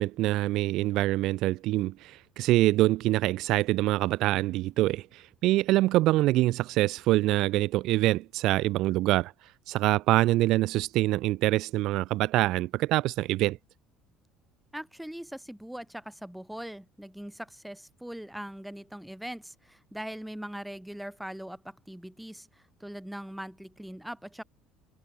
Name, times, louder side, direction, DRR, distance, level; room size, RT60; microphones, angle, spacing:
voice 1, 0.0-9.3 9.7-13.6, right 17 dB, 65° right, 0.3 m, -25 dB
voice 2, 14.7-24.4, equal, ahead, 1.0 m, -41 dB
cardioid pair, 130°, 0 cm